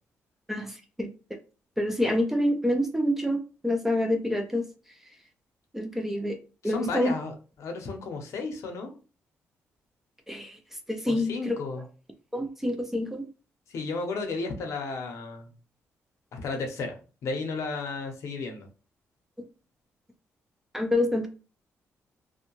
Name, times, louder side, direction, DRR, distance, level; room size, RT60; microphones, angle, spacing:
voice 1, 0.5-1.1 1.8-4.6 5.7-6.4 6.6-7.1 10.3-10.6 10.9-11.6 12.3-13.3 19.4-19.5 20.7-21.3, left 1 dB, 5° right, 4 dB, 0.3 m, -27 dB
voice 2, 6.6-8.9 11.1-11.8 13.7-15.5 16.3-18.7, left 3 dB, 70° left, 4 dB, 0.6 m, -33 dB
2.6 x 2.1 x 2.9 m, 0.35 s
wide cardioid pair, 165°, 5 cm